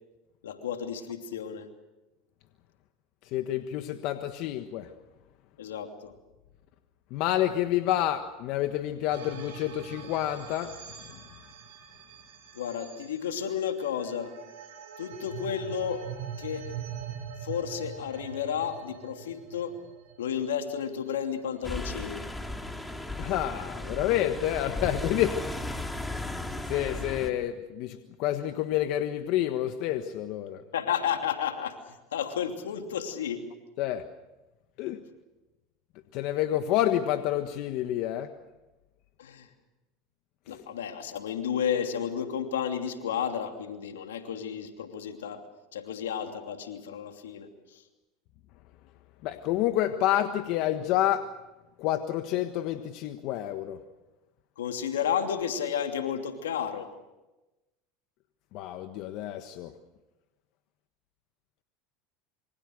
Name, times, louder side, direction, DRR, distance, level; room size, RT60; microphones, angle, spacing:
voice 1, 0.4-1.7 5.6-6.1 12.5-14.3 15.0-16.0 16.4-16.6 17.4-19.8 20.2-22.3 30.7-33.4 39.2-39.5 40.5-45.4 45.7-47.8 54.6-56.9, left 8 dB, 90° left, 5 dB, 2.8 m, -32 dB
voice 2, 3.3-4.9 7.1-10.7 23.2-25.5 26.6-30.6 33.8-34.0 34.8-35.0 36.1-38.3 49.2-51.3 51.8-53.8 58.5-59.7, left 12 dB, 60° left, 8 dB, 1.4 m, -28 dB
sound 1, 9.1-21.5, right 8 dB, 80° right, 5.3 m, -43 dB
sound 2, 21.6-27.3, left 1 dB, 10° left, 3.1 m, -35 dB
27.0 x 24.5 x 6.6 m, 1.0 s
hypercardioid pair, 90°, 0 cm